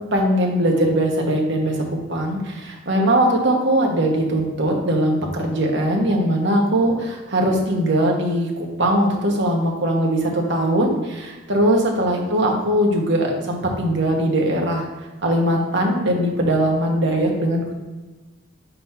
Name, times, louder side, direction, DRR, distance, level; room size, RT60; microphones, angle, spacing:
voice 1, 0.0-14.9 15.2-17.7, right 1 dB, 60° right, 0 dB, 1.2 m, -20 dB
4.4 x 4.2 x 5.7 m, 1.2 s
head